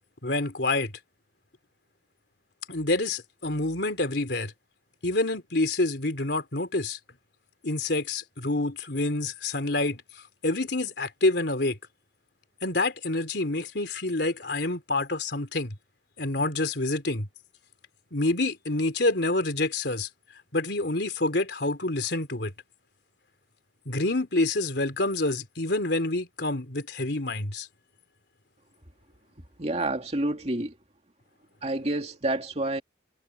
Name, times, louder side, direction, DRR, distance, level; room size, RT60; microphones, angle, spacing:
voice 1, 0.2-0.9 2.7-4.5 5.0-7.0 7.6-10.0 10.4-11.8 12.6-15.7 16.2-17.3 18.1-20.1 20.5-22.5 23.9-27.7, left 2 dB, 70° left, 3.4 m, -27 dB
voice 2, 29.6-30.8 31.6-32.8, right 2 dB, 40° right, 2.6 m, -28 dB
head